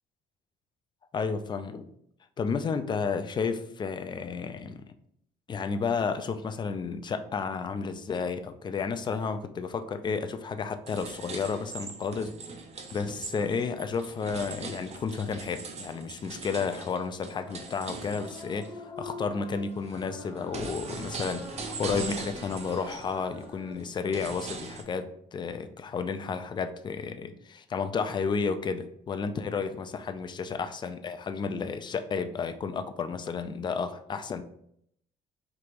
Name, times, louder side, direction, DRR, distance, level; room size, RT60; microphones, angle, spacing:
voice 1, 1.1-1.9 2.4-4.9 5.5-12.3 12.9-18.7 19.0-34.4, left 5 dB, 25° left, 8 dB, 0.3 m, -32 dB
sound 1, 10.9-18.7 19.2-24.8, right 4 dB, 40° right, 0.6 m, -41 dB
sound 2, 17.4-23.7, left 2 dB, 10° left, 1.2 m, -46 dB
4.7 x 2.8 x 2.5 m, 0.71 s
cardioid pair, 110°, 17 cm